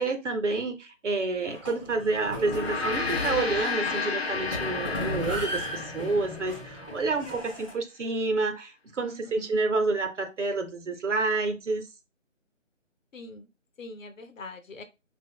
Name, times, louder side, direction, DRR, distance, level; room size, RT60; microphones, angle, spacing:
voice 1, 0.0-11.8, right 3 dB, 65° right, 0.8 m, -29 dB
sound 1, 1.5-7.7, equal, 25° left, 0.8 m, -36 dB
Gong, 2.4-7.0, left 4 dB, 55° left, 0.5 m, -32 dB
voice 2, 9.0-9.6 13.1-13.5 13.8-14.8, left 2 dB, 80° left, 0.8 m, -43 dB
3.7 x 2.4 x 2.2 m
figure-of-eight pair, 180°, 38 cm